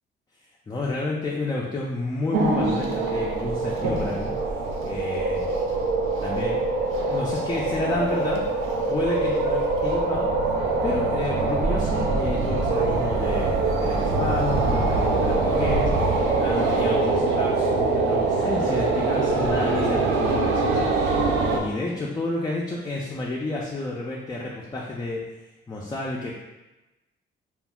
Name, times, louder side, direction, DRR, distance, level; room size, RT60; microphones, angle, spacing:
voice 1, 0.7-4.3 4.8-5.5 6.2-6.6 7.1-8.4 8.9-10.3 10.8-25.2 25.7-26.3, left 2 dB, 20° left, -3 dB, 0.4 m, -30 dB
sound 1, 2.3-21.6, right 3 dB, 90° right, 0.4 m, -23 dB
2.4 x 2.0 x 3.5 m, 1.0 s
cardioid pair, 90°, 20 cm